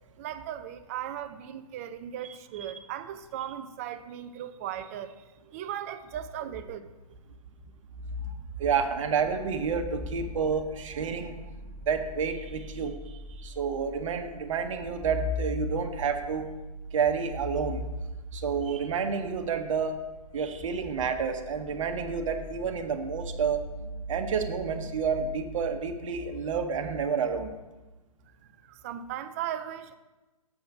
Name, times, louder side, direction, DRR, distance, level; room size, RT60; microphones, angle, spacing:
voice 1, 0.2-6.9 28.6-30.0, right 10 dB, 25° right, 0.4 m, -37 dB
voice 2, 8.0-11.4 11.8-16.5 16.9-17.8 18.3-20.0 20.3-23.6 24.1-27.5, right 5 dB, 55° right, 1.0 m, -29 dB
sound 1, 8.4-25.8, right 3 dB, 5° right, 1.5 m, -44 dB
7.1 x 5.1 x 5.9 m
hypercardioid pair, 140°, 20 cm